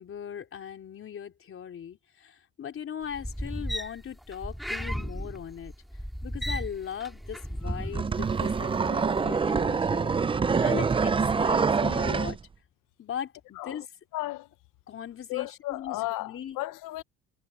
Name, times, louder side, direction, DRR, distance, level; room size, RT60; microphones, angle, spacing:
voice 1, 0.0-5.7 6.2-12.4 13.0-13.8 14.9-16.6, left 8 dB, 40° left, 3.8 m, -39 dB
sound 1, 3.0-8.8 9.2-9.4, equal, ahead, 4.2 m, -35 dB
sound 2, 7.7-12.4, right 5 dB, 15° right, 0.5 m, -25 dB
voice 2, 13.5-13.9 14.1-14.5 15.3-17.0, left 18 dB, 65° left, 0.9 m, -34 dB
cardioid pair, 125°, 35 cm